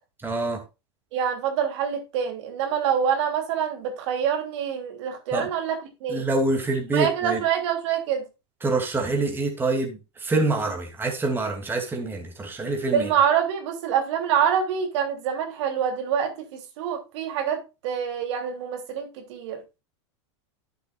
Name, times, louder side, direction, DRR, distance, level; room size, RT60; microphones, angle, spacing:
voice 1, 0.2-0.6 5.3-5.5 6.1-7.4 8.6-13.1, right 2 dB, 15° right, 2.7 m, -26 dB
voice 2, 1.1-6.2 6.9-8.2 12.9-19.6, right 8 dB, 70° right, 3.2 m, -26 dB
12.0 x 8.1 x 2.5 m
supercardioid pair, 120°, 16 cm